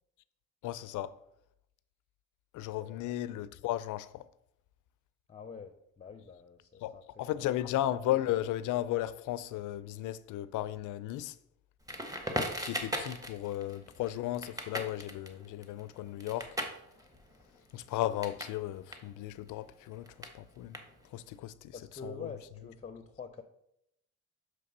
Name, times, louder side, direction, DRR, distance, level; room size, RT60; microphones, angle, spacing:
voice 1, 0.6-1.2 2.5-4.3 6.8-11.4 12.6-16.6 17.7-20.8 21.1-22.3, left 13 dB, 85° left, 0.4 m, -35 dB
voice 2, 2.8-3.1 5.3-7.6 21.7-23.4, left 5 dB, 25° left, 0.5 m, -47 dB
Crackle, 11.9-18.6 18.8-21.3, equal, 10° right, 1.0 m, -39 dB
6.7 x 3.3 x 5.3 m
cardioid pair, 90°, 30 cm